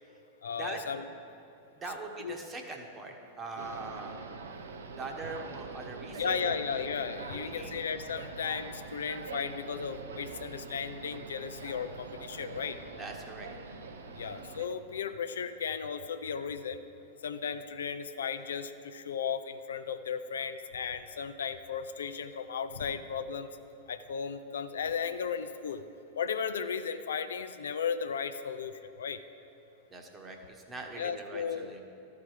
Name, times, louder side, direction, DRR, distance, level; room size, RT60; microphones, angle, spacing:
voice 1, 0.4-1.1 2.2-2.4 6.2-12.8 14.2-16.8 17.2-23.5 23.9-25.8 26.1-28.7 29.0-29.2 31.0-31.7, left 6 dB, 75° left, 10 dB, 0.4 m, -35 dB
voice 2, 1.8-4.1 5.0-6.5 7.3-7.8 8.2-8.3 13.0-13.5 29.9-31.8, right 3 dB, 25° right, 3 dB, 1.2 m, -42 dB
sound 1, 3.6-14.7, right 4 dB, 75° right, 0.6 m, -44 dB
13.0 x 4.7 x 4.9 m, 2.7 s
hypercardioid pair, 95°, 0 cm